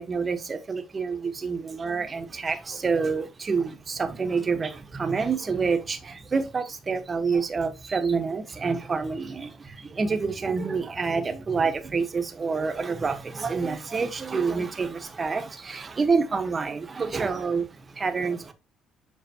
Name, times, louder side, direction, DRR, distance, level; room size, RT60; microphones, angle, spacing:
voice 1, 0.0-18.5, right 5 dB, 30° right, 1.5 m, -28 dB
8.1 x 5.9 x 3.0 m
cardioid pair, 105°, 0 cm